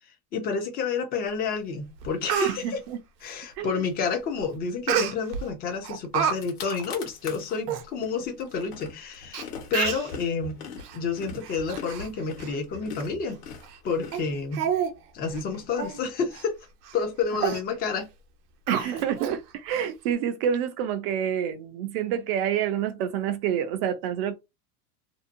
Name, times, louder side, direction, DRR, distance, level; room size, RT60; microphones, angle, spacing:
voice 1, 0.3-2.8 3.2-10.6 10.9-13.4 13.8-14.7 15.1-16.6 16.9-18.1 18.8-18.9, left 5 dB, 20° left, 0.5 m, -29 dB
Speech, 1.6-1.7 2.0-2.6 4.9-5.4 5.8-6.3 6.7-6.8 7.4-7.5 7.7-7.8 8.6-8.7 9.3-9.4 9.7-10.1 10.8-11.0 11.4-12.1 12.4-12.6 13.0-13.1 13.6-13.8 14.1-14.2 14.5-14.9 15.2-15.4 15.8-16.0 16.3-16.5 16.8-17.0 17.4-17.6 18.7-19.3 19.7-19.8, right 8 dB, 85° right, 0.8 m, -28 dB
voice 2, 2.4-3.0 3.6-3.8 17.4-17.6 18.7-24.3, right 9 dB, 40° right, 0.5 m, -28 dB
sound 1, 6.0-6.1 6.3-7.6 8.0-14.8, left 5 dB, 50° left, 1.1 m, -41 dB
2.6 x 2.1 x 2.5 m
supercardioid pair, 145°, 46 cm